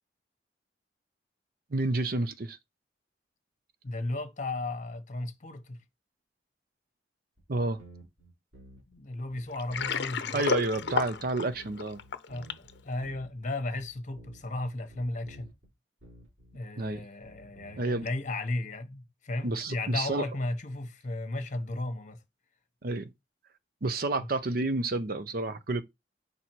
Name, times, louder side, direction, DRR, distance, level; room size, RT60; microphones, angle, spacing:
voice 1, 1.7-2.6 7.5-7.8 10.3-12.0 16.8-17.0 17.8-18.0 19.4-20.2 22.8-23.1 23.8-25.8, right 2 dB, 55° right, 0.7 m, -30 dB
voice 2, 3.8-5.8 8.9-10.4 12.3-15.5 16.5-22.2 24.2-24.3, left 2 dB, 45° left, 1.0 m, -35 dB
sound 1, 7.4-7.5 7.8-9.0 9.3-10.1 10.4-13.5 13.8-14.6 14.9-15.7 16.0-17.8, right 1 dB, 75° right, 3.3 m, -53 dB
Water, 9.5-12.7, left 5 dB, 65° left, 0.6 m, -32 dB
5.4 x 4.3 x 4.5 m
head